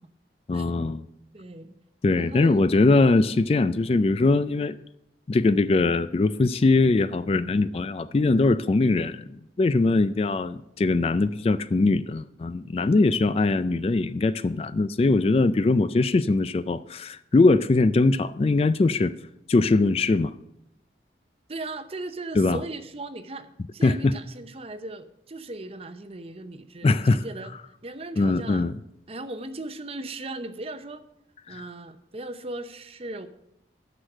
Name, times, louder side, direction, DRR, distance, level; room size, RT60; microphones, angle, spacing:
voice 1, 0.5-1.0 2.0-4.8 5.3-19.1 19.5-20.3 22.4-22.6 23.8-24.2 26.8-27.2 28.2-28.8 31.5-31.6, left 3 dB, 35° left, 14 dB, 0.3 m, -21 dB
voice 2, 1.3-1.8 2.2-2.7 21.5-27.5 27.8-28.7 29.1-31.0 31.5-33.3, right 2 dB, 35° right, 11 dB, 0.7 m, -37 dB
9.8 x 6.4 x 7.6 m, 0.81 s
head